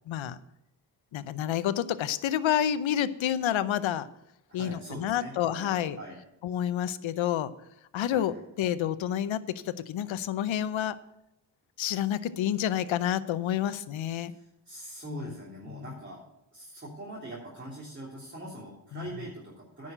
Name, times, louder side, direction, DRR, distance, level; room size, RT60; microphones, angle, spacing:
voice 1, 0.1-0.4 1.1-4.1 4.5-6.0 6.4-7.5 7.9-11.0 11.8-14.3 15.1-15.3 15.7-15.9 18.9-19.1, left 10 dB, 75° left, 15 dB, 0.8 m, -29 dB
voice 2, 4.5-6.2 8.1-8.4 14.2-16.2 16.5-19.9, right 1 dB, 25° right, -5 dB, 3.4 m, -43 dB
9.8 x 6.4 x 7.8 m, 0.84 s
cardioid pair, 60°, 47 cm